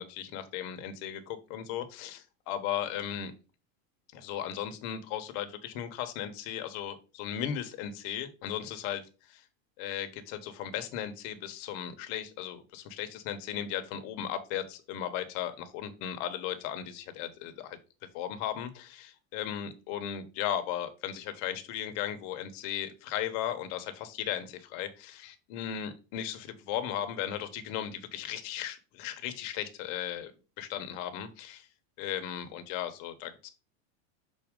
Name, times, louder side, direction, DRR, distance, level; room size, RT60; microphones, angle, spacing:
voice 1, 0.0-3.3 4.1-9.0 9.3-9.4 9.8-17.8 18.1-30.3 30.6-31.7 32.0-33.5, left 10 dB, 50° left, 8 dB, 1.1 m, -36 dB
6.3 x 4.0 x 3.7 m, 0.32 s
supercardioid pair, 155°, 39 cm